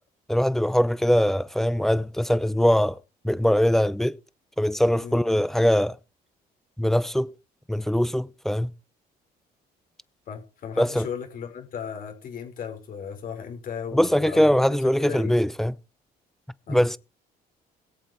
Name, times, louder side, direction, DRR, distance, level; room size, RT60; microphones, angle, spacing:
voice 1, 0.3-3.0 3.2-4.2 4.6-6.0 6.8-7.3 7.7-8.7 10.8-11.1 13.9-15.7 16.7-17.0, equal, ahead, 0.7 m, -22 dB
voice 2, 10.3-14.6 14.8-15.4 16.7-16.8, left 7 dB, 55° left, 5.3 m, -36 dB
21.0 x 7.8 x 4.6 m
cardioid pair, 110°, 17 cm